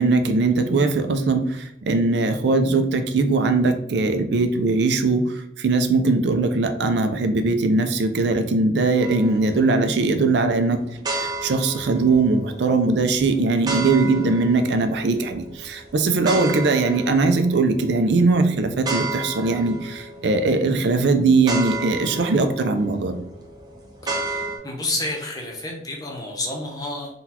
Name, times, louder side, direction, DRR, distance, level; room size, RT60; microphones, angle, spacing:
voice 1, 0.0-5.2 5.6-10.8 11.1-23.1, right 3 dB, 75° right, 7 dB, 0.4 m, -20 dB
sound 1, 9.0-24.6, right 2 dB, 25° right, 0.6 m, -33 dB
voice 2, 24.2-27.1, left 2 dB, 20° left, 0 dB, 0.7 m, -30 dB
3.9 x 2.3 x 2.8 m, 0.79 s
head